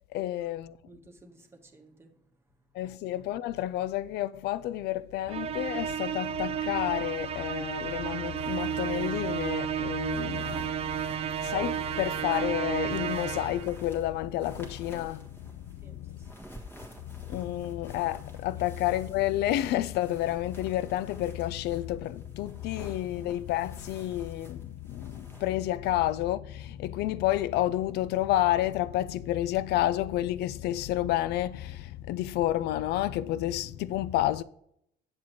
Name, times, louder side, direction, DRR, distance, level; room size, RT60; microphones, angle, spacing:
voice 1, 0.1-0.7 2.7-16.2 17.2-34.4, left 14 dB, 75° left, 0.4 m, -30 dB
voice 2, 0.8-2.1 2.5-2.6 15.8-16.5, right 2 dB, 15° right, 1.3 m, -56 dB
Musical instrument, 5.3-13.8, right 9 dB, 35° right, 0.5 m, -32 dB
sound 1, 8.4-25.5, equal, 10° left, 1.5 m, -52 dB
7.4 x 7.3 x 3.0 m
cardioid pair, 110°, 17 cm